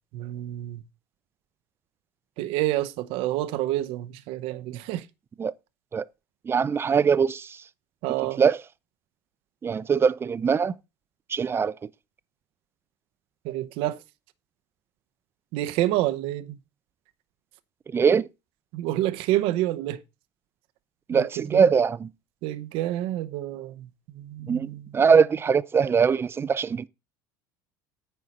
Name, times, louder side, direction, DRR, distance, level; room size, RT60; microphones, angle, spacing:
voice 1, 0.1-0.8 2.4-5.1 8.0-8.4 13.4-14.0 15.5-16.6 18.7-20.0 21.1-21.7 22.4-24.9, right 15 dB, 70° right, 0.8 m, -28 dB
voice 2, 6.4-7.6 8.4-8.6 9.6-10.8 11.3-11.8 17.9-18.3 21.1-22.1 24.4-26.9, right 6 dB, 25° right, 0.5 m, -22 dB
9.5 x 4.4 x 6.5 m
supercardioid pair, 105°, 10 cm